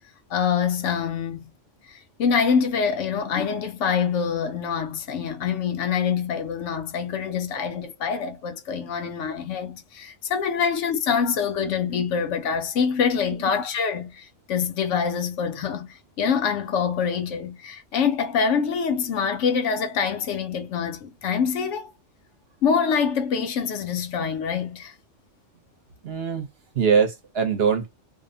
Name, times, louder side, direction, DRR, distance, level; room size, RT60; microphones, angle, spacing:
voice 1, 0.3-1.5 1.8-21.9 22.6-24.9, left 6 dB, 75° left, 0.9 m, -25 dB
voice 2, 26.0-26.5 26.7-27.9, right 6 dB, 60° right, 0.9 m, -22 dB
2.7 x 2.0 x 2.6 m
omnidirectional pair, 1.3 m